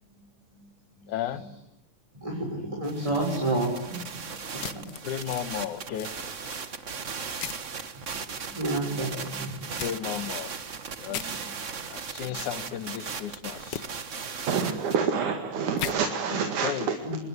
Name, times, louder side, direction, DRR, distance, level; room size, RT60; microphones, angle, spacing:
voice 1, 1.1-1.4 5.0-6.1 9.8-10.5 11.0-11.4 11.9-13.8 16.3-16.9, left 10 dB, 85° left, 14 dB, 2.8 m, -34 dB
voice 2, 2.1-4.9 7.9-8.1 8.4-9.8 11.4-11.5 12.2-12.3 17.0-17.2, right 2 dB, 10° right, -1 dB, 6.5 m, -31 dB
sound 1, 2.8-15.0, right 5 dB, 40° right, 1.1 m, -37 dB
sound 2, 4.6-5.5 5.9-6.6 7.4-7.7 9.8-9.9 11.1-11.3 13.7-13.8 15.8-16.0, left 9 dB, 65° left, 1.0 m, -36 dB
voice 3, 14.5-17.0, right 6 dB, 85° right, 6 dB, 3.4 m, -27 dB
26.0 x 21.5 x 8.1 m, 0.85 s
omnidirectional pair, 3.4 m